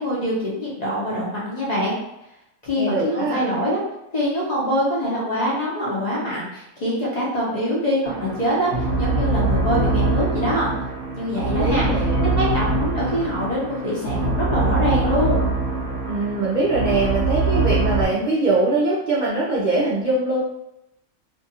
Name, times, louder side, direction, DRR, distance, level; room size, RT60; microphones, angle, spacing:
voice 1, 0.0-2.0 2.6-3.8 4.1-10.7 11.1-11.9 12.4-15.4, equal, 35° left, -7 dB, 0.7 m, -24 dB
voice 2, 2.8-3.4 11.3-12.3 16.0-20.4, right 2 dB, 80° right, -7 dB, 0.4 m, -22 dB
sound 1, 8.0-18.0, right 2 dB, 45° right, 1.0 m, -23 dB
2.7 x 2.4 x 2.7 m, 0.85 s
omnidirectional pair, 1.5 m